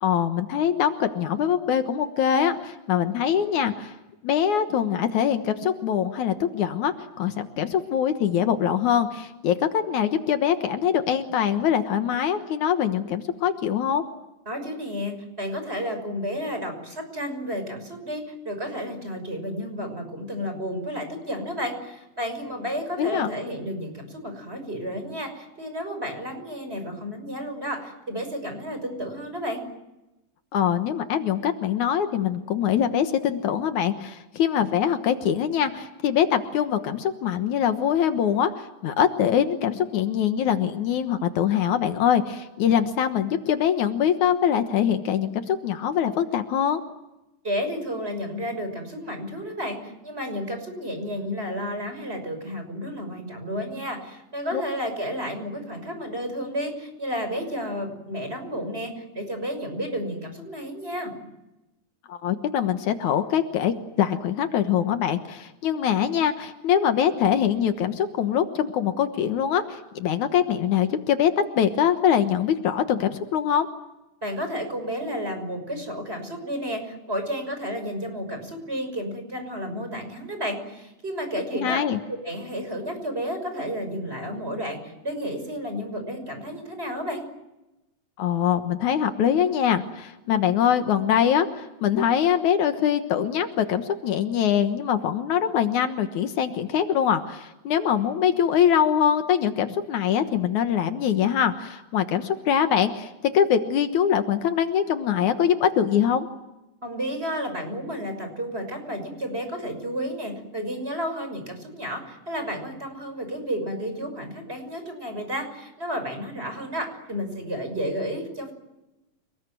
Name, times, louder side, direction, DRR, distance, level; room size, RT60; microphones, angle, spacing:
voice 1, 0.0-3.9 4.2-14.0 23.0-23.3 30.5-46.8 54.5-54.6 62.1-73.7 81.6-82.0 88.2-106.3, left 9 dB, 75° left, 8 dB, 2.7 m, -23 dB
voice 2, 14.5-29.6 47.4-61.2 74.2-81.8 82.2-87.2 106.8-118.5, equal, 20° right, 7 dB, 6.3 m, -32 dB
29.5 x 20.5 x 9.3 m, 0.96 s
omnidirectional pair, 3.5 m